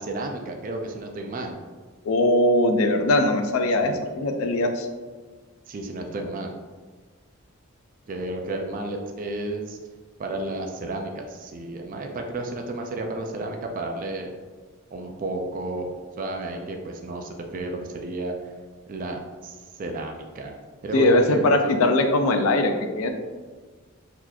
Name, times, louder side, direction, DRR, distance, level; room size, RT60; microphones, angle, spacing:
voice 1, 0.0-1.6 3.8-4.0 5.7-6.5 8.1-9.8 10.2-14.3 14.9-15.9 16.2-18.4 18.9-20.5 20.8-21.7, right 2 dB, 40° right, 3 dB, 0.3 m, -32 dB
voice 2, 2.0-4.9 20.9-23.1, left 1 dB, 80° left, 6 dB, 0.4 m, -21 dB
3.9 x 2.9 x 2.3 m, 1.4 s
head